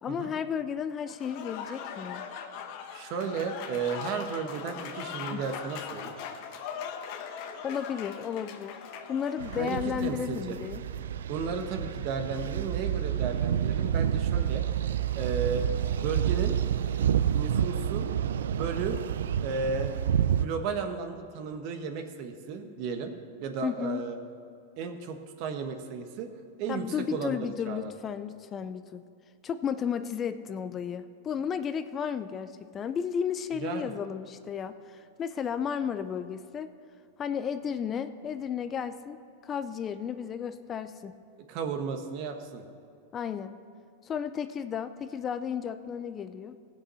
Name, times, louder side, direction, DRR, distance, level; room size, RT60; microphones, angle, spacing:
voice 1, 0.0-2.2 5.3-5.4 7.6-8.8 9.1-10.8 23.6-24.0 26.7-29.0 29.4-36.7 37.2-39.2 39.4-41.2 43.1-43.6 44.0-46.6, left 7 dB, 25° left, 11 dB, 0.5 m, -33 dB
Applause / Crowd, 1.1-9.9, left 7 dB, 55° left, 1.1 m, -40 dB
voice 2, 2.9-6.2 9.6-10.6 11.3-14.7 15.1-15.7 16.0-16.6 17.3-18.1 18.4-19.0 19.4-19.9 20.4-24.2 24.8-26.3 26.6-26.9 27.1-27.9 33.6-33.9 41.5-42.6, right 5 dB, 50° right, 6 dB, 1.2 m, -34 dB
sound 1, 9.4-20.5, right 9 dB, 85° right, 0.4 m, -29 dB
sound 2, 11.5-20.4, right 1 dB, 65° right, 3.1 m, -52 dB
16.5 x 6.2 x 5.6 m, 2.5 s
hypercardioid pair, 120°, 0 cm